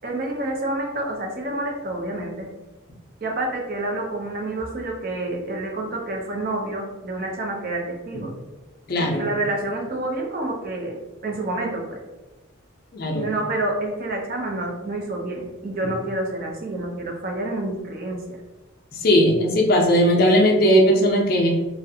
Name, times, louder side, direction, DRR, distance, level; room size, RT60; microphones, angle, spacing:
voice 1, 0.0-2.5 3.2-8.3 9.0-11.0 11.2-12.0 13.1-18.4, right 2 dB, 45° right, 1 dB, 0.5 m, -28 dB
voice 2, 8.9-9.3 12.9-13.3 18.9-21.5, equal, 45° left, 0 dB, 0.4 m, -18 dB
2.5 x 2.1 x 2.6 m, 1.1 s
head